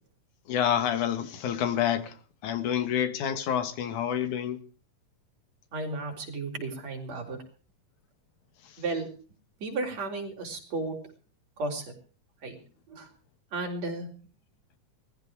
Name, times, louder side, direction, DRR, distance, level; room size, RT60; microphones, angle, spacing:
voice 1, 0.5-2.2 2.4-4.6 8.6-8.8, left 9 dB, 80° left, 3.0 m, -28 dB
voice 2, 5.7-7.4 8.8-9.1 9.6-11.0 11.6-11.8 12.4-12.6 12.9-13.1 13.5-14.1, right 3 dB, 60° right, 5.0 m, -33 dB
19.5 x 14.5 x 4.7 m
omnidirectional pair, 3.4 m